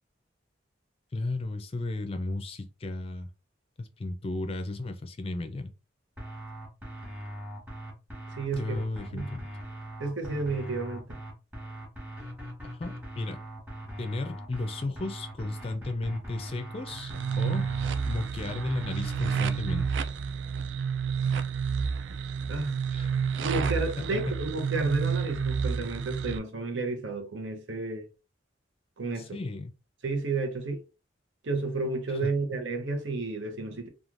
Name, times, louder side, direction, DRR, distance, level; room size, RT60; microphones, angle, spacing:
voice 1, 1.1-3.3 3.8-5.7 8.6-9.5 12.8-13.4 14.0-17.7 18.1-19.8 22.9-23.1 29.2-29.7 32.2-32.3, left 2 dB, 30° left, 0.4 m, -34 dB
sound 1, 6.2-19.9, equal, 10° right, 1.2 m, -41 dB
voice 2, 8.3-8.8 9.1-9.3 10.0-11.2 22.5-22.8 23.4-28.1 29.0-29.4 30.0-30.8 31.4-33.9, right 3 dB, 90° right, 0.8 m, -31 dB
sound 2, 16.9-26.4, right 6 dB, 70° right, 0.3 m, -30 dB
3.1 x 2.3 x 2.5 m
head